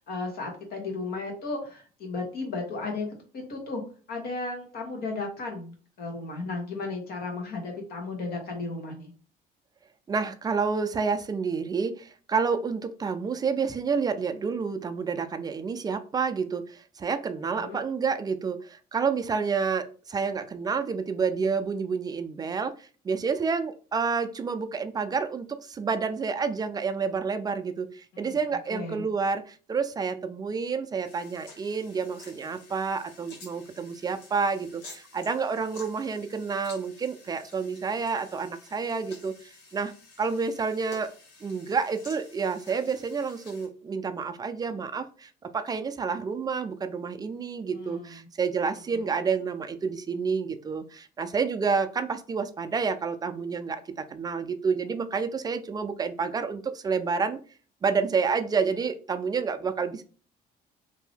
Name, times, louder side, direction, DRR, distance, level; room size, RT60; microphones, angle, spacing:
voice 1, 0.0-3.1 3.3-3.8 4.1-9.1 17.5-17.8 28.1-28.4 28.7-29.0 47.7-48.1 48.9-49.0, left 3 dB, 65° left, 2 dB, 1.3 m, -34 dB
voice 2, 10.1-41.1 41.4-53.8 54.1-57.4 57.8-60.0, right 5 dB, 25° right, 9 dB, 0.4 m, -29 dB
sound 1, 31.0-43.7, left 3 dB, 90° left, 1.4 m, -51 dB
2.8 x 2.6 x 3.4 m, 0.39 s
cardioid pair, 110°, 17 cm